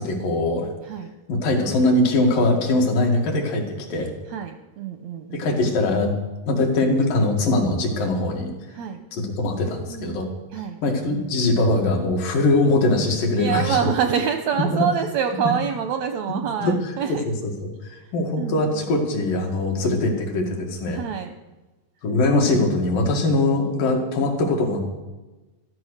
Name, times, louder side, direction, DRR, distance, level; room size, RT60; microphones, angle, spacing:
voice 1, 0.0-0.7 1.3-4.1 5.3-6.1 6.5-8.5 9.1-10.3 10.8-13.8 15.4-15.5 16.6-17.7 18.1-21.0 22.0-24.8, left 2 dB, 75° left, 1 dB, 3.8 m, -22 dB
voice 2, 4.3-5.5 8.7-9.0 9.9-10.2 10.5-10.8 13.3-17.2 17.9-18.1 18.4-18.9 20.9-21.3, right 8 dB, 80° right, 7 dB, 1.6 m, -26 dB
14.0 x 13.0 x 6.4 m, 1.1 s
omnidirectional pair, 3.9 m